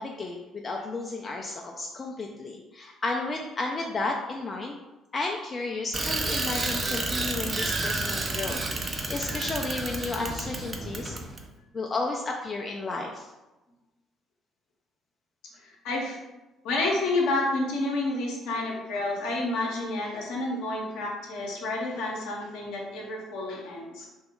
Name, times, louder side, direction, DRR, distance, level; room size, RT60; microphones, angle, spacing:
voice 1, 0.0-4.8 5.1-11.2 11.7-13.3, left 3 dB, 35° left, 1 dB, 0.3 m, -33 dB
Bicycle, 5.9-11.4, right 2 dB, 35° right, 0.5 m, -30 dB
voice 2, 15.5-16.2 16.6-24.1, left 2 dB, 65° left, -1 dB, 0.7 m, -30 dB
2.8 x 2.2 x 3.4 m, 1.0 s
hypercardioid pair, 50°, 0 cm